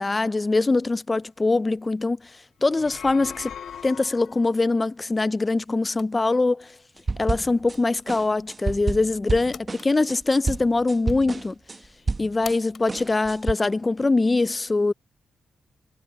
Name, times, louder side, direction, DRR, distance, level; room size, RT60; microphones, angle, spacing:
voice 1, 0.0-2.2 2.6-3.5 3.8-6.8 7.2-11.6 12.2-14.9, left 3 dB, 20° left, 0.3 m, -23 dB
sound 1, 2.7-4.6, left 8 dB, 70° left, 1.4 m, -40 dB
sound 2, 5.9-14.0, left 6 dB, 55° left, 7.3 m, -50 dB
sound 3, 7.1-7.8 8.1-12.6 12.9-13.5, right 3 dB, 30° right, 0.8 m, -29 dB
wide cardioid pair, 125°, 0 cm